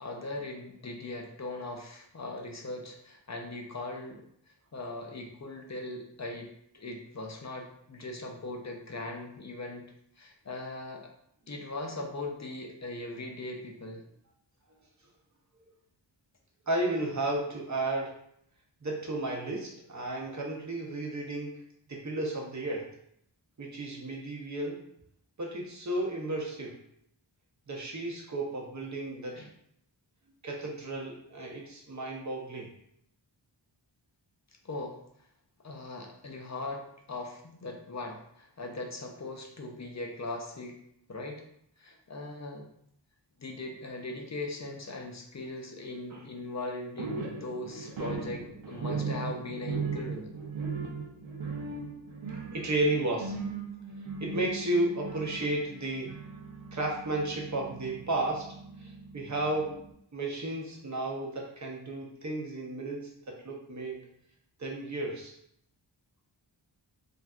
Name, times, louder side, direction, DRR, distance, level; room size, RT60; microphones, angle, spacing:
voice 1, 0.0-11.0 11.5-14.0 29.3-29.5 34.6-35.0 35.6-40.8 41.1-41.4 41.8-42.7 43.4-50.3, left 2 dB, 40° left, 1 dB, 0.5 m, -40 dB
voice 2, 16.7-18.1 18.8-21.6 21.9-22.9 23.6-24.8 25.4-26.8 27.7-29.4 30.4-32.7 46.1-46.2 52.5-53.4 54.2-56.2 56.7-59.8 60.1-64.1 64.6-65.3, right 2 dB, 40° right, -2 dB, 0.7 m, -33 dB
sound 1, 47.0-59.9, right 4 dB, 80° right, 0.6 m, -38 dB
3.1 x 2.5 x 2.3 m, 0.72 s
wide cardioid pair, 55°, 47 cm